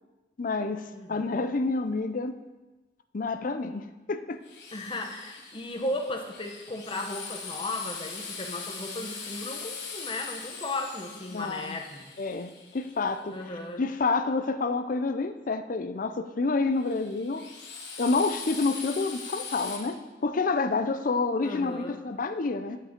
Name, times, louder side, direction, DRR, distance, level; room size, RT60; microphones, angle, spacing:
voice 1, 0.4-2.4 3.1-4.4 11.3-11.8 12.2-13.4 13.8-17.5 18.0-22.8, left 3 dB, 50° left, 9 dB, 0.5 m, -28 dB
voice 2, 0.9-1.5 4.7-12.1 13.3-13.8 21.4-22.0, left 2 dB, 30° left, 3 dB, 0.9 m, -35 dB
Drill, 4.4-13.4 16.8-19.8, left 5 dB, 70° left, 1.6 m, -41 dB
8.2 x 8.1 x 4.4 m, 1.2 s
head